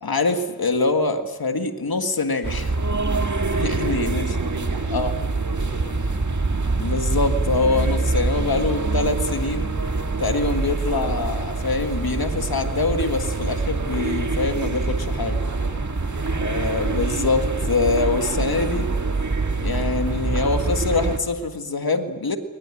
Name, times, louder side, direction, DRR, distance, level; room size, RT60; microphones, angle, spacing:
voice 1, 0.0-2.7 3.6-4.3 4.9-5.1 6.7-9.7 10.2-15.4 16.3-18.9 19.6-22.4, left 3 dB, 90° left, 7 dB, 1.8 m, -24 dB
sound 1, 2.4-21.2, right 3 dB, 55° right, 1.9 m, -25 dB
voice 2, 3.6-5.1 5.4-6.2 8.0-8.2 15.4-16.4, right 3 dB, 85° right, 1 dB, 3.7 m, -39 dB
22.0 x 19.5 x 9.8 m, 1.4 s
wide cardioid pair, 40°, 35 cm